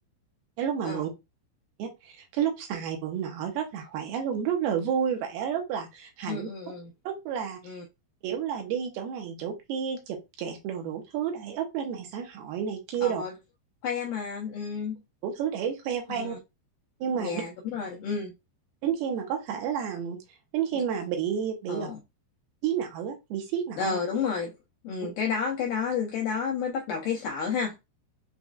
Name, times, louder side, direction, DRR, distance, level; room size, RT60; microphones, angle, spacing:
voice 1, 0.6-1.1 1.8-6.5 7.1-7.8 8.2-13.2 15.2-16.4 17.0-17.4 18.8-20.2 20.5-21.9 22.6-24.0, right 8 dB, 75° right, 2.7 m, -30 dB
voice 2, 6.3-6.9 7.7-7.8 13.0-13.3 13.8-15.0 16.1-16.4 17.2-18.3 21.7-22.0 23.8-24.5 24.8-27.8, left 6 dB, 80° left, 1.9 m, -31 dB
7.1 x 2.4 x 2.3 m
omnidirectional pair, 4.7 m